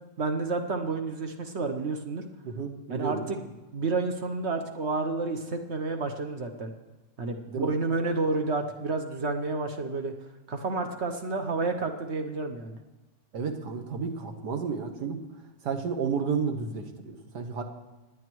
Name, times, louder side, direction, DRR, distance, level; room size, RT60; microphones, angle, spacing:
voice 1, 0.2-2.2 2.9-3.4 3.7-6.7 7.2-10.1 10.5-12.8, right 3 dB, 50° right, 5 dB, 0.9 m, -30 dB
voice 2, 2.4-3.5 7.5-7.7 13.3-15.2 15.6-17.6, right 5 dB, 65° right, 5 dB, 1.6 m, -32 dB
26.0 x 9.6 x 3.1 m, 1.1 s
omnidirectional pair, 2.0 m